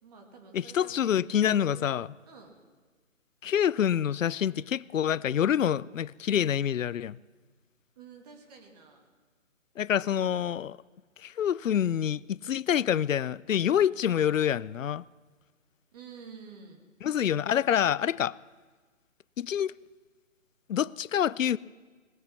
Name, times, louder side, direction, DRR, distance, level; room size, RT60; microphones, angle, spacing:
voice 1, 0.0-2.6 8.0-9.1 15.9-16.9, right 5 dB, 30° right, 2.2 m, -50 dB
voice 2, 0.5-2.1 3.4-7.2 9.8-10.8 11.2-15.0 17.0-18.4 19.4-19.7 20.7-21.6, left 9 dB, 75° left, 0.5 m, -27 dB
19.0 x 9.3 x 5.7 m
figure-of-eight pair, 145°, 40 cm